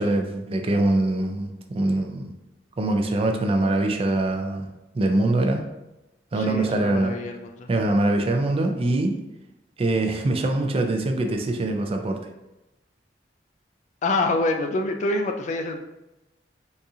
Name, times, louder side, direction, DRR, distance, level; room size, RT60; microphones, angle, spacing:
voice 1, 0.0-2.3 2.8-4.7 4.9-5.7 6.3-7.1 7.7-9.1 9.8-12.2, right 2 dB, 35° right, 4 dB, 0.4 m, -23 dB
voice 2, 6.4-7.7 14.0-15.8, left 2 dB, 45° left, 5 dB, 0.3 m, -26 dB
4.0 x 2.4 x 2.7 m, 0.96 s
head